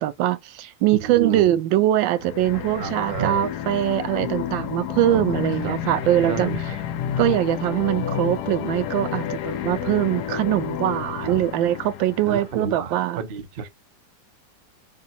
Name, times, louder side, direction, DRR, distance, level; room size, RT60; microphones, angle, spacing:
voice 1, 0.0-6.8 7.2-13.2, right 13 dB, 85° right, 1.3 m, -22 dB
voice 2, 1.1-1.5 2.8-3.4 5.1-5.8 6.2-6.6 11.3-11.4 12.3-13.7, right 6 dB, 55° right, 0.6 m, -30 dB
sound 1, 2.2-12.7, left 9 dB, 70° left, 1.0 m, -30 dB
5.0 x 2.2 x 4.0 m
omnidirectional pair, 2.0 m